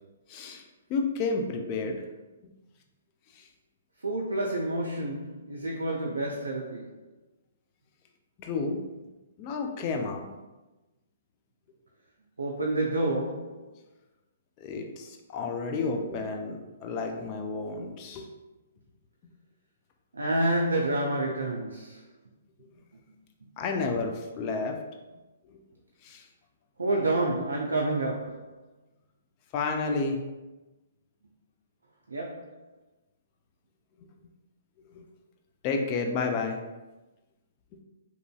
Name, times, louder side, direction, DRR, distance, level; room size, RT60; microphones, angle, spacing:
voice 1, 0.3-0.6 0.9-2.0 3.3-3.5 8.4-8.8 9.4-10.2 14.6-18.3 23.6-24.8 25.5-25.6 26.0-26.3 29.5-30.2 34.9-35.0 35.6-36.6, left 4 dB, 35° left, 0.4 m, -31 dB
voice 2, 4.0-6.9 12.4-13.6 20.1-22.0 22.9-23.1 23.4-23.5 26.8-28.5 32.1-32.5, right 2 dB, 85° right, 0.4 m, -29 dB
2.9 x 2.6 x 2.2 m
hypercardioid pair, 125°, 0 cm